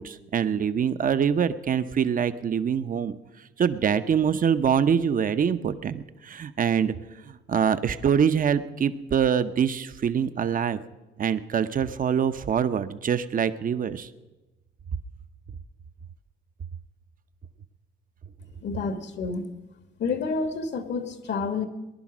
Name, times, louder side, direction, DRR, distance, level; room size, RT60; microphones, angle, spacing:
voice 1, 0.0-3.2 3.6-6.9 7.3-10.8 11.2-14.1, right 7 dB, 45° right, 11 dB, 0.8 m, -24 dB
voice 2, 18.6-19.4 20.0-21.7, left 4 dB, 60° left, 9 dB, 1.6 m, -29 dB
19.5 x 11.0 x 6.1 m, 1.1 s
cardioid pair, 90°, 20 cm